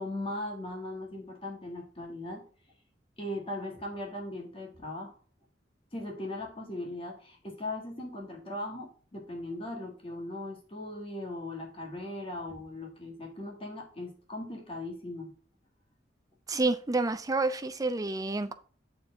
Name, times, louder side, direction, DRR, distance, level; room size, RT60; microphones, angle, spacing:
voice 1, 0.0-2.4 3.2-5.1 5.9-15.3, left 1 dB, 30° left, 1.6 m, -39 dB
voice 2, 16.5-18.5, right 3 dB, 20° right, 0.5 m, -29 dB
8.7 x 4.4 x 3.6 m
head